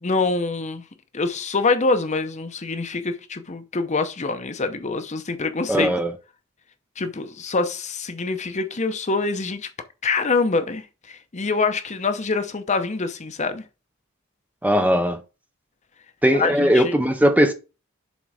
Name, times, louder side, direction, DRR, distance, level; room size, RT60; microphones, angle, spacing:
voice 1, 0.0-0.8 1.1-5.9 7.0-9.7 10.0-13.6 16.3-16.9, left 3 dB, 35° left, 0.7 m, -25 dB
voice 2, 5.7-6.1 14.6-15.2 16.2-17.5, equal, 5° right, 0.5 m, -19 dB
7.2 x 3.9 x 4.8 m
head